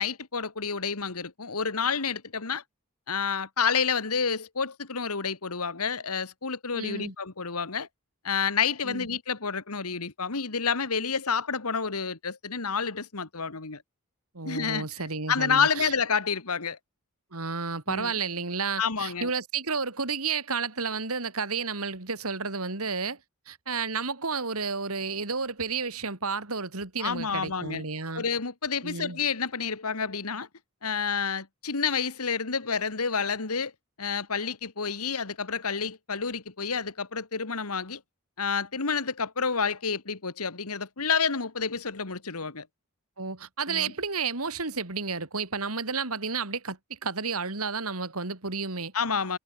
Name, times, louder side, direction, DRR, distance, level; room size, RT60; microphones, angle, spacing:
voice 1, 0.0-2.6 3.1-7.9 8.2-13.8 14.4-14.9 15.3-16.8 17.9-18.1 18.8-19.3 27.0-27.8 28.1-30.5 30.8-33.7 34.0-38.0 38.4-42.7 43.7-43.9 48.9-49.4, left 6 dB, 80° left, 1.9 m, -29 dB
voice 2, 6.7-7.1 8.8-9.1 14.3-15.9 17.3-23.2 23.5-28.2 28.8-29.2 43.2-48.9, right 4 dB, 75° right, 3.3 m, -31 dB
head